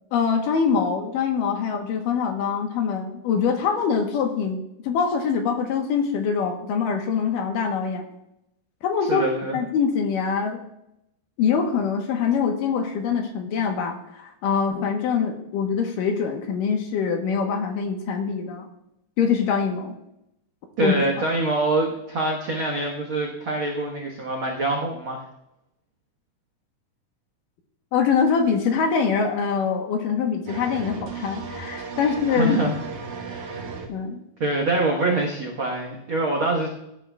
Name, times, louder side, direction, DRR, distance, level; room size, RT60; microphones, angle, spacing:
voice 1, 0.1-8.0 8.8-9.3 9.5-10.6 11.4-18.7 19.2-20.0 20.8-20.9 27.9-32.6 33.9-34.2, left 6 dB, 70° left, 4 dB, 2.4 m, -24 dB
voice 2, 9.1-9.6 20.8-25.2 32.0-32.7 33.2-33.6 34.4-36.7, right 2 dB, 85° right, -1 dB, 1.1 m, -25 dB
sound 1, 30.5-33.9, right 5 dB, 60° right, 2.8 m, -35 dB
17.0 x 9.8 x 2.3 m, 0.83 s
omnidirectional pair, 4.4 m